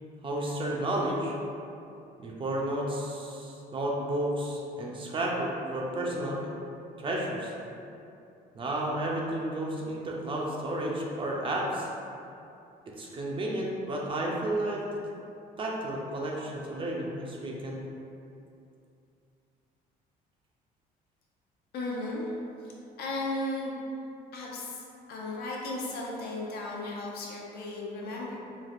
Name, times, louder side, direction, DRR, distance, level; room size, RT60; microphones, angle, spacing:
voice 1, 0.2-1.3 2.2-6.5 7.0-7.5 8.5-11.9 13.0-14.8 15.6-17.8, right 1 dB, 30° right, -2 dB, 0.4 m, -32 dB
voice 2, 21.7-22.7 23.0-23.8 24.3-28.4, left 2 dB, 75° left, -3 dB, 0.6 m, -35 dB
3.2 x 2.4 x 2.5 m, 2.6 s
cardioid pair, 125°, 16 cm